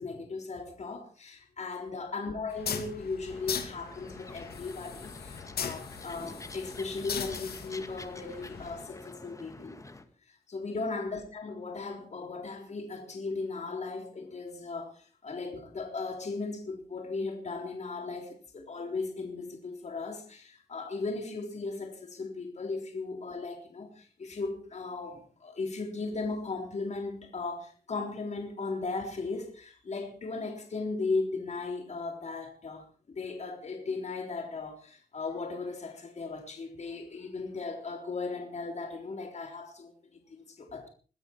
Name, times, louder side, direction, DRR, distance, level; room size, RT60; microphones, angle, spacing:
voice 1, 0.0-9.8 10.3-40.9, left 3 dB, 40° left, 3.8 m, -37 dB
sound 1, 2.5-8.8, left 7 dB, 70° left, 2.8 m, -39 dB
sound 2, 3.3-10.0, left 2 dB, 20° left, 1.9 m, -48 dB
22.5 x 13.0 x 4.6 m
wide cardioid pair, 130°, 17 cm